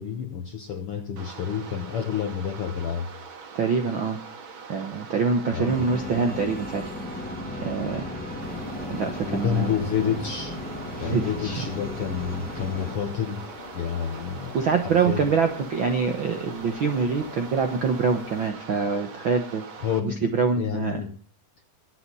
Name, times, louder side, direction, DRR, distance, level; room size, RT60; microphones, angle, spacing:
voice 1, 0.0-3.1 5.5-5.8 9.3-10.6 11.0-13.5 13.7-14.6 14.8-15.3 19.8-20.3 20.6-21.1, left 8 dB, 65° left, 7 dB, 1.5 m, -29 dB
sound 1, 1.2-20.0, right 5 dB, 45° right, 2.0 m, -43 dB
voice 2, 3.5-4.2 4.7-6.9 7.6-8.1 8.9-9.7 10.9-11.7 14.5-19.6 20.0-21.0, right 5 dB, 60° right, 6 dB, 1.2 m, -25 dB
sound 2, 5.7-12.9, left 1 dB, 5° left, 0.9 m, -35 dB
sound 3, 8.4-18.5, left 4 dB, 85° left, 4.6 m, -44 dB
23.0 x 8.0 x 5.5 m, 0.40 s
omnidirectional pair, 3.8 m